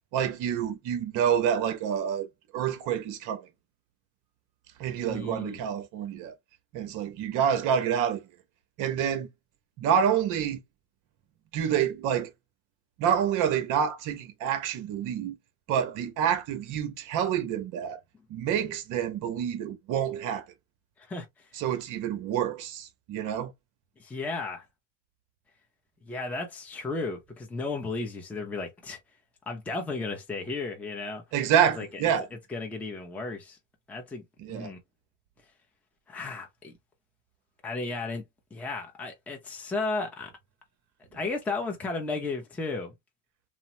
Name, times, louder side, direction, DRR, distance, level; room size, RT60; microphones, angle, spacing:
voice 1, 0.1-2.3 2.5-3.5 4.8-6.3 6.7-8.2 8.8-9.3 9.8-10.6 11.5-12.3 13.0-15.4 15.7-18.0 18.3-20.4 21.5-23.5 31.3-32.3 34.4-34.7, right 8 dB, 40° right, 0.8 m, -27 dB
voice 2, 5.1-5.6 21.1-21.3 24.0-24.6 26.1-29.0 29.5-31.2 31.8-31.9 32.5-33.6 33.9-34.2 34.5-34.8 36.1-36.7 37.6-38.2 38.5-40.3 41.1-43.0, left 3 dB, 5° left, 0.4 m, -34 dB
2.9 x 2.0 x 2.7 m
supercardioid pair, 115°, 48 cm